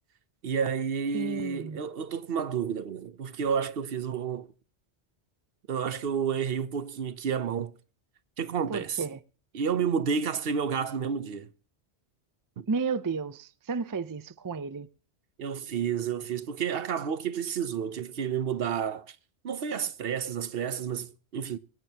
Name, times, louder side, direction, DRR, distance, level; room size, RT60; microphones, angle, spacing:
voice 1, 0.4-4.5 5.7-7.8 8.4-9.0 9.5-11.5 12.6-12.7 15.4-19.2 19.4-21.6, right 7 dB, 60° right, 0.9 m, -30 dB
voice 2, 1.1-1.8 8.7-9.2 12.7-14.9, right 5 dB, 30° right, 0.4 m, -32 dB
24.5 x 9.1 x 2.8 m
omnidirectional pair, 1.1 m